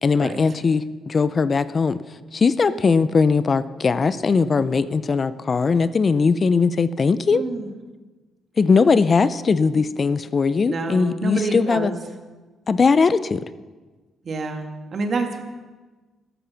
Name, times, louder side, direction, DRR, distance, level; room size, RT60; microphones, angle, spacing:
voice 1, 0.0-2.0 2.3-7.4 8.6-11.9 12.7-13.4, left 4 dB, 40° left, 14 dB, 0.5 m, -19 dB
voice 2, 7.3-7.7 10.7-11.9 14.2-15.4, right 3 dB, 50° right, 4 dB, 2.2 m, -27 dB
14.0 x 12.5 x 5.9 m, 1.3 s
cardioid pair, 90°, 0 cm